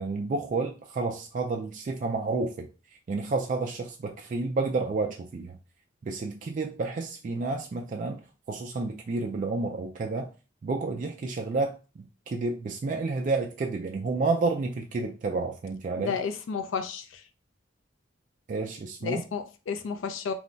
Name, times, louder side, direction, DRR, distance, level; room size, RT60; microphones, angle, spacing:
voice 1, 0.0-2.7 3.1-5.6 6.0-10.3 10.6-16.1 18.5-19.2, right 3 dB, 40° right, 0.3 m, -30 dB
voice 2, 16.0-17.2 19.0-20.3, left 6 dB, 70° left, 0.4 m, -32 dB
2.3 x 2.0 x 3.8 m
head